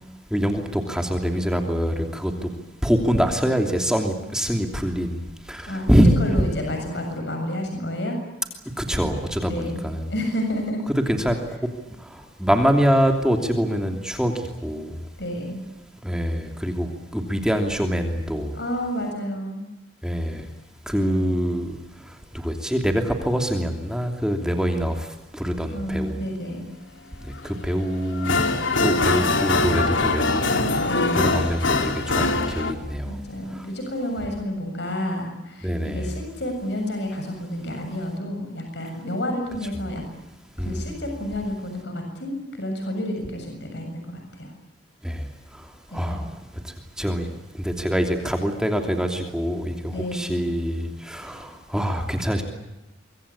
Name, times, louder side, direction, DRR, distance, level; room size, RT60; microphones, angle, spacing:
voice 1, 0.3-2.3 2.8-5.2 5.5-6.1 8.8-10.1 11.1-11.4 12.4-14.3 14.6-14.9 16.0-16.9 17.1-18.5 20.0-20.4 20.9-21.7 22.4-25.1 25.3-26.1 27.4-28.6 28.8-30.5 31.1-33.1 35.6-36.1 40.6-40.8 45.0-45.2 45.9-46.2 47.0-47.3 47.6-52.4, equal, 5° right, 4 dB, 3.0 m, -24 dB
voice 2, 5.7-8.2 9.4-9.8 10.1-10.8 15.2-15.6 18.5-19.6 20.9-21.4 25.7-26.7 30.8-31.4 33.0-40.0 40.6-44.5 45.9-46.3 49.9-50.4, left 1 dB, 65° left, 4 dB, 7.2 m, -30 dB
sound 1, 27.4-27.5 27.9-32.7, left 3 dB, 85° left, 3.2 m, -22 dB
25.0 x 24.0 x 8.5 m, 0.97 s
head